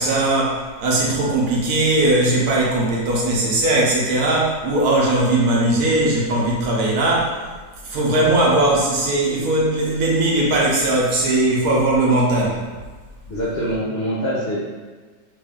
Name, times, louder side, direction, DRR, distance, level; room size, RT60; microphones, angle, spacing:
voice 1, 0.0-7.4 7.8-12.6, right 2 dB, 65° right, -4 dB, 1.1 m, -19 dB
voice 2, 13.3-14.6, equal, 75° left, -6 dB, 0.5 m, -24 dB
3.2 x 2.5 x 3.5 m, 1.4 s
omnidirectional pair, 1.8 m